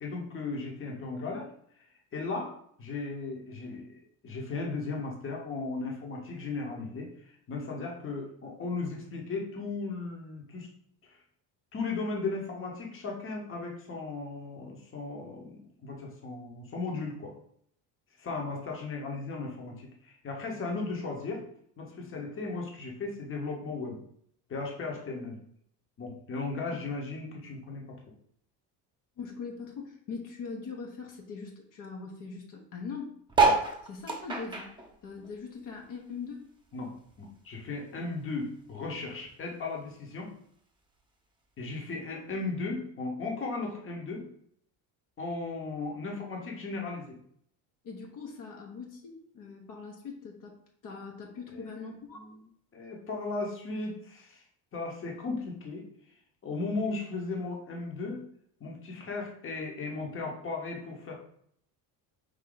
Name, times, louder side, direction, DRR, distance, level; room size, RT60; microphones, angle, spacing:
voice 1, 0.0-1.5 2.1-2.5 2.8-10.7 11.0-11.2 11.7-17.3 18.2-21.4 21.8-24.0 24.5-25.4 26.0-27.8 36.7-36.9 37.2-40.3 41.6-44.2 45.2-47.2 51.5-51.7 52.1-52.4 52.7-54.4 54.7-55.8 56.4-58.2 58.6-61.1, left 3 dB, 35° left, 0 dB, 1.1 m, -36 dB
voice 2, 29.2-33.1 33.8-34.7 35.0-36.4 47.8-52.3, left 5 dB, 55° left, 0 dB, 1.0 m, -41 dB
sound 1, 33.3-36.1 36.4-37.9 38.4-38.5 38.7-38.8 39.0-39.4 40.2-40.3, right 4 dB, 10° right, 0.9 m, -28 dB
4.9 x 2.7 x 3.9 m, 0.67 s
cardioid pair, 125°, 38 cm